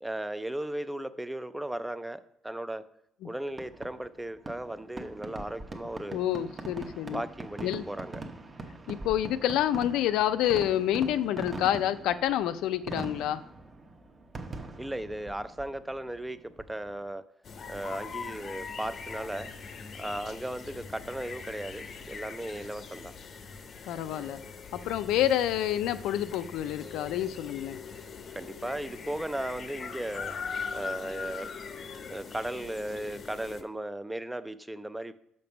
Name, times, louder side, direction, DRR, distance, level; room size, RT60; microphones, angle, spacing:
voice 1, 0.0-2.8 3.2-6.2 7.1-8.2 14.8-17.2 17.7-19.5 20.0-23.1 28.3-30.3 30.7-31.5 32.1-35.1, right 1 dB, 5° right, 13 dB, 0.3 m, -36 dB
Fireworks, 3.5-17.1, right 2 dB, 25° right, 0.7 m, -42 dB
voice 2, 6.1-7.2 7.6-7.9 8.9-13.4 23.8-24.4 24.7-27.8, left 11 dB, 85° left, 12 dB, 0.4 m, -28 dB
sound 1, 17.4-33.6, left 5 dB, 40° left, 0.7 m, -41 dB
5.9 x 5.3 x 6.8 m, 0.77 s
cardioid pair, 130°, 0 cm